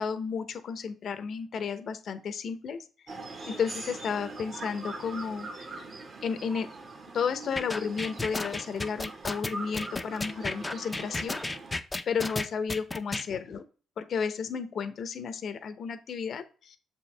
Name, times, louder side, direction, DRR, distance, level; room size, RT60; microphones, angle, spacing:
voice 1, 0.0-2.8 3.5-5.5 6.2-6.7 7.1-11.4 12.1-13.6 14.0-16.8, left 6 dB, 60° left, 10 dB, 0.8 m, -32 dB
sound 1, 3.1-11.8, right 3 dB, 45° right, 1.5 m, -42 dB
sound 2, 7.6-13.3, left 2 dB, 20° left, 0.6 m, -33 dB
6.9 x 4.5 x 3.4 m, 0.37 s
cardioid pair, 90°, 0 cm